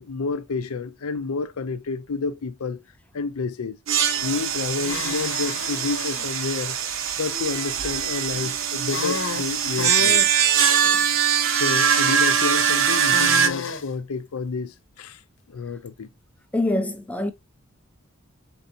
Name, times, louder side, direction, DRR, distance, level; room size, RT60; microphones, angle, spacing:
voice 1, 0.0-2.8 3.1-3.8 4.2-6.7 7.2-10.3 10.8-11.1 11.5-15.2 15.5-16.1, left 4 dB, 90° left, 0.5 m, -30 dB
sound 1, 3.9-13.5, right 8 dB, 65° right, 0.8 m, -22 dB
sound 2, 3.9-11.0, right 4 dB, 85° right, 1.4 m, -42 dB
sound 3, 4.8-6.3 8.8-10.3 12.9-13.9, left 5 dB, 60° left, 0.8 m, -31 dB
voice 2, 16.5-17.3, left 1 dB, 5° left, 0.4 m, -24 dB
4.5 x 4.0 x 2.6 m
head